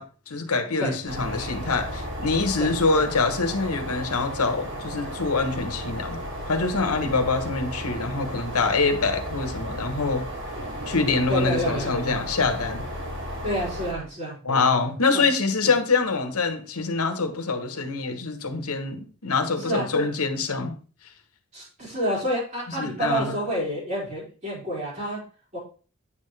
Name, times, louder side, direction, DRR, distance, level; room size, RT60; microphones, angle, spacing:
voice 1, 0.0-6.2 6.5-10.3 10.9-12.9 14.4-20.7 22.8-23.4, left 4 dB, 85° left, 1.2 m, -25 dB
sound 1, 1.1-13.9, equal, 55° right, 2.8 m, -34 dB
voice 2, 11.3-12.2 13.4-14.6 15.1-15.2 15.6-15.7 19.6-19.8 21.5-25.2 25.5-25.6, right 1 dB, 30° right, 5.1 m, -29 dB
9.2 x 6.7 x 3.3 m
head